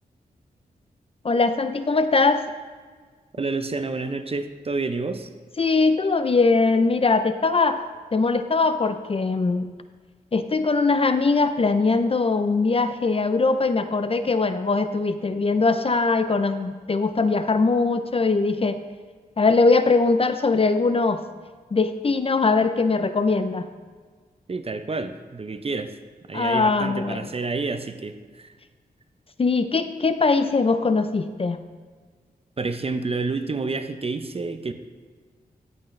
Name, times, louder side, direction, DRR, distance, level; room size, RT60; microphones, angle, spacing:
voice 1, 1.2-2.4 5.6-7.8 8.1-9.7 10.3-18.8 19.4-21.2 21.7-23.7 26.3-27.3 29.4-31.6, left 3 dB, 35° left, 10 dB, 0.5 m, -21 dB
voice 2, 3.4-5.3 24.5-25.9 26.3-28.5 32.6-34.7, right 3 dB, 35° right, 9 dB, 0.7 m, -29 dB
10.5 x 8.8 x 3.2 m, 1.5 s
cardioid pair, 65°, 16 cm